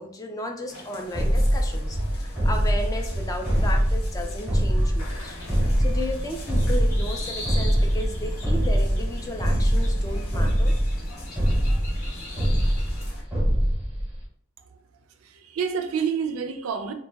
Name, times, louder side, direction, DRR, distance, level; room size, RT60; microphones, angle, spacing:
voice 1, 0.0-5.4 5.8-10.8, left 1 dB, 15° left, 3 dB, 0.3 m, -34 dB
sound 1, 0.7-13.2, left 2 dB, 80° left, 0.7 m, -45 dB
sound 2, 1.1-14.2, equal, 5° right, 0.8 m, -23 dB
sound 3, 5.4-13.0, left 2 dB, 40° left, 0.8 m, -42 dB
voice 2, 15.2-16.9, right 6 dB, 75° right, 7 dB, 0.3 m, -28 dB
2.1 x 2.0 x 3.3 m, 0.63 s
head